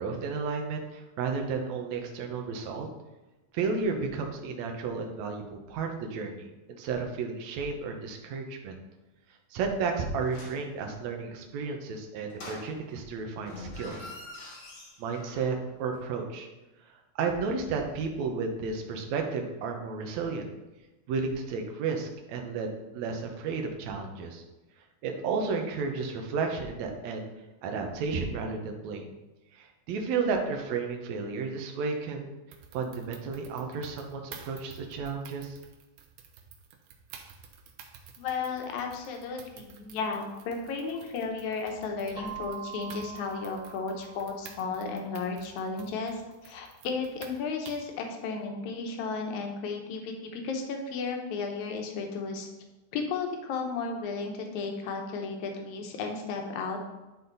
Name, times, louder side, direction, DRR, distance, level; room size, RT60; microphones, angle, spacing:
voice 1, 0.0-2.9 3.5-8.8 9.5-14.1 15.0-16.5 17.2-20.5 21.1-24.4 25.0-27.3 27.6-29.1 29.5-32.4 32.7-35.6, right 4 dB, 65° right, 3 dB, 1.9 m, -32 dB
sound 1, 10.2-10.7 12.3-13.1 13.4-15.7 15.9-16.0, left 2 dB, 45° left, 1.7 m, -45 dB
sound 2, 32.5-48.0, right 7 dB, 80° right, 2.7 m, -51 dB
voice 2, 38.2-52.5 52.9-56.8, left 4 dB, 65° left, 3 dB, 2.1 m, -34 dB
Keyboard (musical), 42.1-44.9, right 8 dB, 30° right, 1.7 m, -43 dB
11.5 x 4.1 x 4.0 m, 1.1 s
omnidirectional pair, 4.2 m